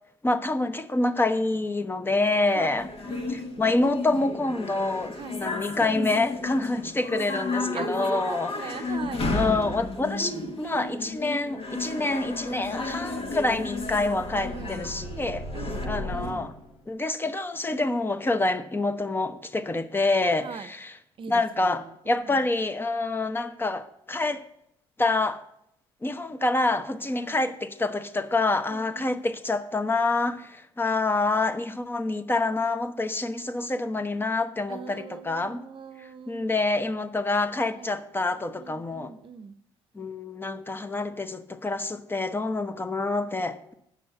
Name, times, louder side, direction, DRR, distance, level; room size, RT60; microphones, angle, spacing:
voice 1, 0.2-2.9 3.3-9.0 9.3-15.4 15.9-16.5 16.9-21.0 21.3-24.4 25.0-25.4 26.0-35.6 36.3-39.1 39.9-43.7, left 2 dB, 15° left, 0.8 m, -27 dB
voice 2, 2.5-3.8 5.1-5.4 7.7-9.3 14.5-14.8 15.5-16.5 20.4-20.7 21.2-22.4 27.1-27.4 28.7-29.2 34.7-36.5 37.8-38.0 38.6-39.5, right 7 dB, 45° right, 0.7 m, -41 dB
sound 1, 2.8-15.9, left 2 dB, 50° left, 1.3 m, -33 dB
sound 2, 11.6-16.9, equal, 85° left, 2.2 m, -39 dB
8.1 x 6.1 x 5.7 m
hypercardioid pair, 65°, 12 cm